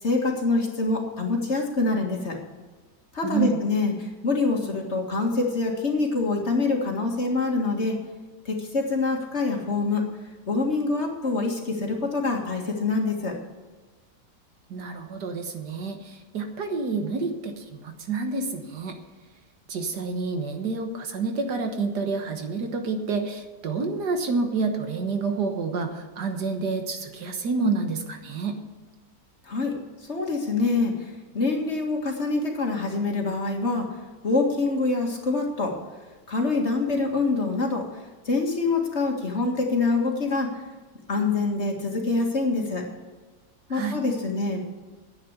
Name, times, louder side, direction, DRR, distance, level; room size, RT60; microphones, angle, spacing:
voice 1, 0.0-2.4 3.1-3.9 4.2-8.0 8.5-10.0 10.5-13.4 29.5-29.8 30.1-30.9 31.3-33.9 34.2-35.7 36.3-37.9 38.3-40.5 41.1-42.8 43.7-44.6, left 3 dB, 40° left, 1 dB, 2.1 m, -25 dB
voice 2, 3.2-3.6 14.7-18.9 19.7-28.6 43.7-44.0, right 4 dB, 75° right, 5 dB, 1.9 m, -28 dB
10.5 x 8.6 x 8.0 m, 1.3 s
omnidirectional pair, 1.8 m